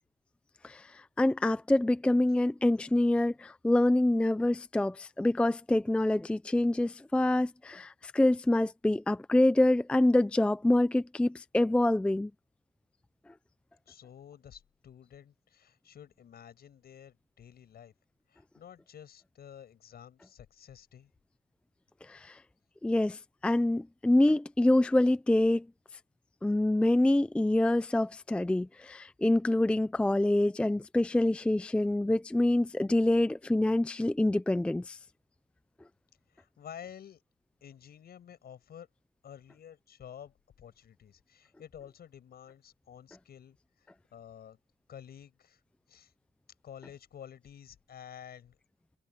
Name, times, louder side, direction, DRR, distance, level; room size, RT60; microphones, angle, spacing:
voice 1, 0.6-12.3 22.1-22.4 22.8-25.7 26.4-35.0, left 1 dB, 5° left, 0.4 m, -26 dB
voice 2, 13.9-17.9 18.3-21.1 36.3-37.2 37.6-38.9 39.2-44.6 44.9-45.6 45.9-46.1 46.6-48.6, left 9 dB, 60° left, 6.9 m, -50 dB
wide cardioid pair, 165°, 18 cm